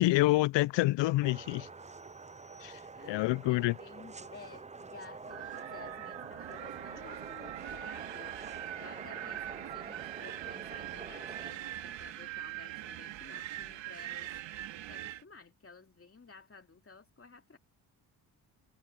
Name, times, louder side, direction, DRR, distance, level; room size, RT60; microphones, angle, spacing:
voice 1, 0.0-1.7 2.6-2.7 3.1-3.7, left 18 dB, 75° left, 0.5 m, -27 dB
sound 1, 1.2-11.5, right 4 dB, 15° right, 0.7 m, -47 dB
sound 2, 1.9-3.4, right 3 dB, 45° right, 5.5 m, -67 dB
voice 2, 2.9-14.3 14.9-17.6, left 4 dB, 30° left, 2.8 m, -54 dB
Wind, 5.3-15.2, right 13 dB, 85° right, 2.3 m, -42 dB
supercardioid pair, 55°, 44 cm